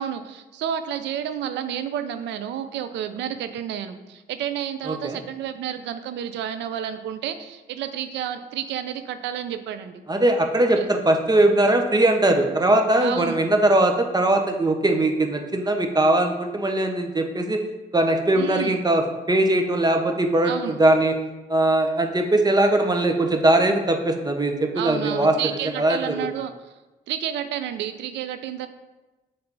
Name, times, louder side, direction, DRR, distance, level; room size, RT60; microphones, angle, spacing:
voice 1, 0.0-10.0 10.8-10.9 13.0-13.4 18.3-18.8 20.4-20.8 24.7-26.5 27.1-28.7, right 9 dB, 90° right, 10 dB, 0.5 m, -30 dB
voice 2, 4.9-5.2 10.1-17.6 17.9-21.1 21.5-25.3 25.8-26.3, right 1 dB, 20° right, 4 dB, 0.9 m, -20 dB
6.9 x 3.4 x 4.0 m, 1.1 s
cardioid pair, 65°, 18 cm